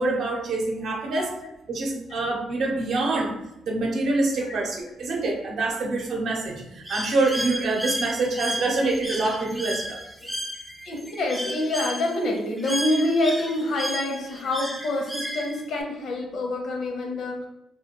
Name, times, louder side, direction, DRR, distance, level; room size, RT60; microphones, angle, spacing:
voice 1, 0.0-1.3 1.7-3.4 3.6-10.0, right 2 dB, 65° right, 0 dB, 0.7 m, -26 dB
voice 2, 1.1-1.5 4.4-4.6 10.8-17.4, left 1 dB, 70° left, 1 dB, 0.6 m, -27 dB
Bird, 6.9-15.8, equal, ahead, 0.4 m, -33 dB
2.4 x 2.2 x 2.9 m, 0.89 s
cardioid pair, 90°, 0 cm